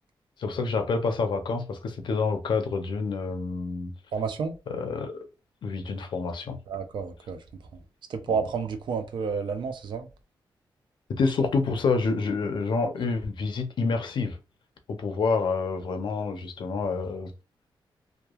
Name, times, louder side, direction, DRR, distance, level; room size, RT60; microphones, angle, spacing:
voice 1, 0.4-3.9 4.7-5.1 5.6-6.6 11.1-14.4 14.9-17.3, left 4 dB, 70° left, 0.5 m, -28 dB
voice 2, 4.1-4.5 6.7-7.4 8.1-10.1, right 5 dB, 70° right, 0.5 m, -30 dB
2.9 x 2.2 x 2.3 m
wide cardioid pair, 125°, 8 cm